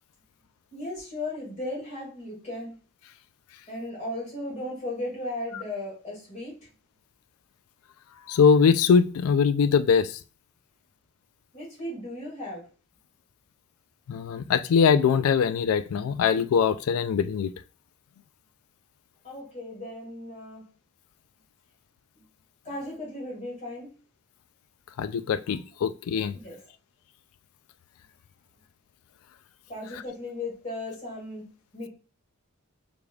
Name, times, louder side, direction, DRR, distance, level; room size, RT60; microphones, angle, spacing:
voice 1, 0.7-2.8 3.7-6.7 11.5-12.6 19.2-20.6 22.1-22.2 22.6-23.9 26.3-26.6 29.7-31.9, left 1 dB, 35° left, -5 dB, 2.3 m, -36 dB
voice 2, 8.3-10.2 14.1-17.5 25.0-26.4, left 6 dB, 80° left, 14 dB, 0.3 m, -22 dB
4.9 x 3.6 x 2.3 m, 0.37 s
head